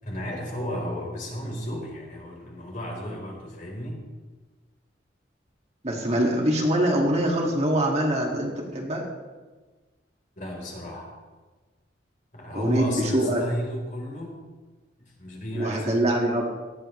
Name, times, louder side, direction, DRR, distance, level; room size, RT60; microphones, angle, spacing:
voice 1, 0.0-4.0 10.4-11.1 12.3-14.5 15.0-15.9, equal, 45° left, -2 dB, 4.3 m, -33 dB
voice 2, 5.8-9.1 12.5-13.4 15.5-16.6, right 1 dB, 35° right, -1 dB, 2.3 m, -24 dB
18.5 x 13.5 x 3.3 m, 1.3 s
head